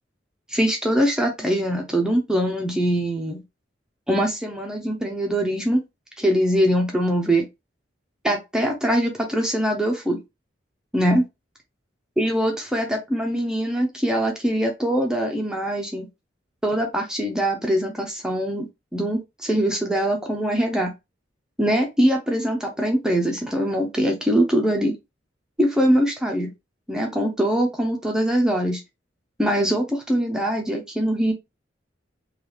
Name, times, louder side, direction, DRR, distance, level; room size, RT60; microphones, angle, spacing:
voice 1, 0.5-3.4 4.1-5.8 6.2-7.5 8.2-10.2 10.9-11.2 12.2-16.1 16.6-20.9 21.6-25.0 25.6-26.5 26.9-28.8 29.4-31.3, equal, 5° right, 1 dB, 0.5 m, -22 dB
3.2 x 2.3 x 3.2 m, 0.22 s
head